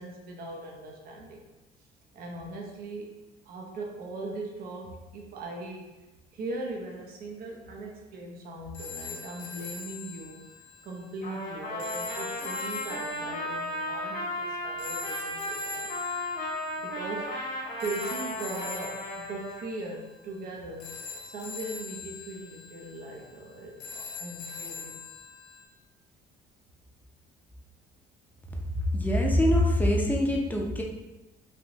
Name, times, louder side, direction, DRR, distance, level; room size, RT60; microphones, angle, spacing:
voice 1, 0.0-1.4 2.1-3.2 3.5-5.9 6.3-10.6 10.8-15.9 16.8-17.3 17.8-21.0 21.2-25.0, right 2 dB, 65° right, 0 dB, 0.7 m, -39 dB
sound 1, 8.7-25.6, left 5 dB, 80° left, 0.7 m, -43 dB
Trumpet, 11.2-19.6, left 1 dB, 55° left, 1.1 m, -35 dB
voice 2, 28.7-30.8, left 1 dB, 10° left, 0 dB, 0.5 m, -24 dB
3.4 x 2.5 x 2.9 m, 1.1 s
cardioid pair, 110°, 17 cm